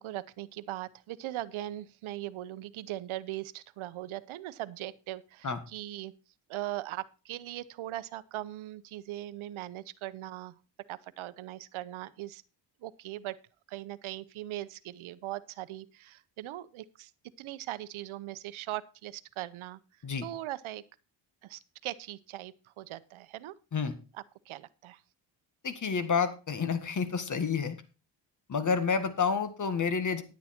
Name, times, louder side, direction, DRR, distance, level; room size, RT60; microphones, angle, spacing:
voice 1, 0.0-6.1 6.5-10.6 10.9-12.4 12.8-13.4 13.7-17.1 17.4-19.8 20.2-20.8 21.4-23.5 24.1-25.0, right 15 dB, 80° right, 16 dB, 0.9 m, -40 dB
voice 2, 25.6-27.8 28.5-30.2, left 5 dB, 40° left, 11 dB, 1.7 m, -29 dB
10.5 x 9.6 x 4.4 m, 0.33 s
cardioid pair, 110°, 48 cm